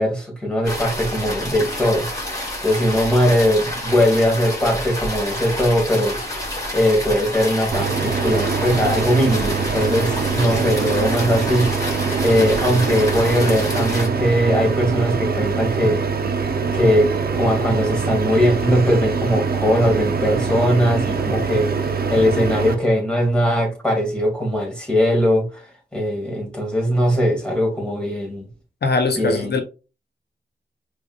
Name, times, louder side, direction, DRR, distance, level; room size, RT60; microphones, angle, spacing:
voice 1, 0.0-6.2 6.7-11.7 12.2-16.0 16.7-21.7 22.1-28.5 29.2-29.6, equal, 5° left, 2.2 m, -20 dB
sound 1, 0.6-14.1, left 1 dB, 20° left, 2.4 m, -29 dB
sound 2, 7.7-22.7, right 5 dB, 65° right, 0.8 m, -23 dB
voice 2, 28.8-29.6, left 3 dB, 75° left, 0.7 m, -21 dB
5.1 x 3.4 x 2.4 m
wide cardioid pair, 80°, 17 cm